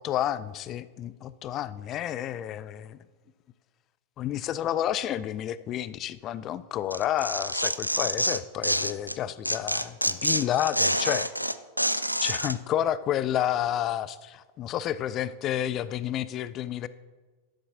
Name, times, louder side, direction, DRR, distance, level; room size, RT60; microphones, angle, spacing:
voice 1, 0.0-3.0 4.2-11.3 12.2-16.9, left 11 dB, 35° left, 17 dB, 0.3 m, -30 dB
Tearing, 6.9-9.2 9.4-12.5, equal, 90° right, 0.3 m, -27 dB
12.0 x 7.1 x 3.6 m, 1.3 s
figure-of-eight pair, 90°, 0 cm